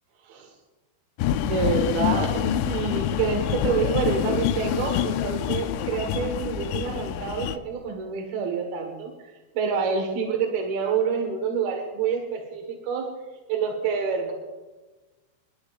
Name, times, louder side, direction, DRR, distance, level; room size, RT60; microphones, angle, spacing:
sound 1, 1.2-7.6, left 10 dB, 85° left, 2.5 m, -26 dB
voice 1, 1.4-9.1 9.6-13.1 13.5-14.3, right 6 dB, 65° right, 2 dB, 2.6 m, -27 dB
28.0 x 11.5 x 2.4 m, 1.2 s
omnidirectional pair, 5.7 m